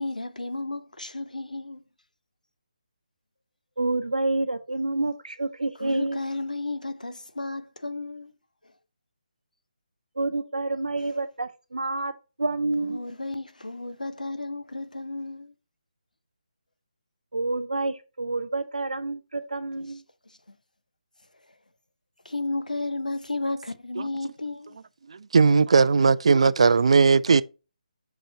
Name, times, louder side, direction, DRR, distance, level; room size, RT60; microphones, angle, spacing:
voice 1, 0.0-1.8 5.8-8.3 12.9-15.5 22.2-24.8, left 2 dB, 80° left, 0.9 m, -33 dB
voice 2, 3.8-6.2 10.2-12.1 12.4-13.0 17.3-20.0, right 2 dB, 70° right, 0.8 m, -28 dB
voice 3, 25.1-27.4, right 5 dB, 50° right, 0.4 m, -18 dB
6.1 x 5.2 x 4.1 m
figure-of-eight pair, 150°, 4 cm